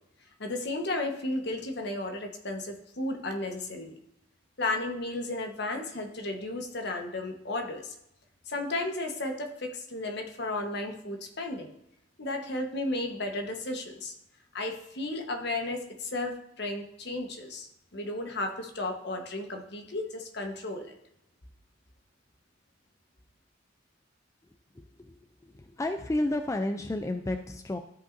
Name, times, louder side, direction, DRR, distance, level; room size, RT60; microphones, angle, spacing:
voice 1, 0.4-4.0 4.6-7.9 8.5-11.7 12.2-14.1 14.5-20.9, left 2 dB, 60° left, 4 dB, 1.2 m, -34 dB
voice 2, 24.8-25.2 25.6-27.8, left 1 dB, 15° left, 6 dB, 0.3 m, -31 dB
13.0 x 5.4 x 2.6 m, 0.82 s
head